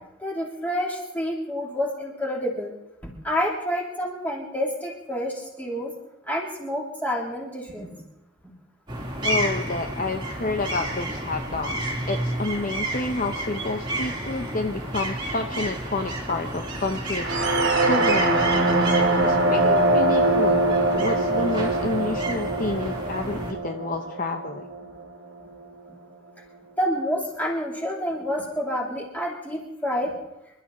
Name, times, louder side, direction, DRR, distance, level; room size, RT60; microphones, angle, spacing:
voice 1, 0.2-2.7 3.0-5.9 6.3-8.0 8.4-8.5 25.9-26.0 26.8-30.1, equal, 10° left, -2 dB, 3.2 m, -28 dB
sound 1, 8.9-23.5, right 1 dB, 20° right, 2.4 m, -31 dB
voice 2, 9.2-17.4 17.8-18.8 19.2-24.7, left 2 dB, 40° left, 5 dB, 0.8 m, -29 dB
sound 2, 17.2-25.1, right 2 dB, 60° right, 2.0 m, -23 dB
27.0 x 12.0 x 4.2 m, 0.91 s
head